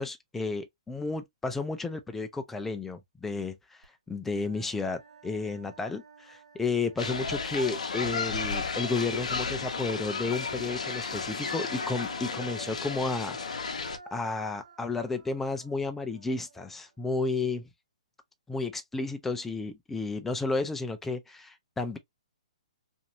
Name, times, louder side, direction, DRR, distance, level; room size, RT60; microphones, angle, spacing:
voice 1, 0.0-13.8 14.1-17.7 18.5-22.0, left 3 dB, 5° left, 0.4 m, -32 dB
Human voice, 3.8-3.9 4.3-7.9 9.6-16.9, right 2 dB, 80° right, 1.3 m, -50 dB
sound 1, 7.0-14.0, left 4 dB, 75° left, 0.7 m, -33 dB
2.6 x 2.6 x 2.9 m
hypercardioid pair, 140°, 4 cm